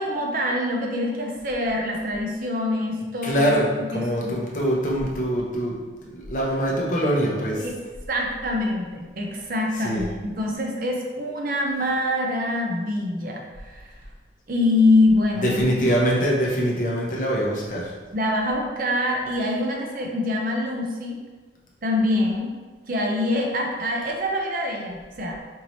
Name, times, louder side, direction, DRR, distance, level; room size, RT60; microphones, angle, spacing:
voice 1, 0.0-4.4 7.6-7.8 8.1-14.0 14.5-15.9 18.1-21.2 21.8-22.5 22.9-25.4, left 2 dB, 50° right, 0 dB, 0.6 m, -25 dB
voice 2, 3.2-5.8 6.0-7.7 9.8-10.0 15.4-17.9, equal, 45° left, -3 dB, 0.7 m, -23 dB
4.5 x 2.7 x 3.0 m, 1.3 s
head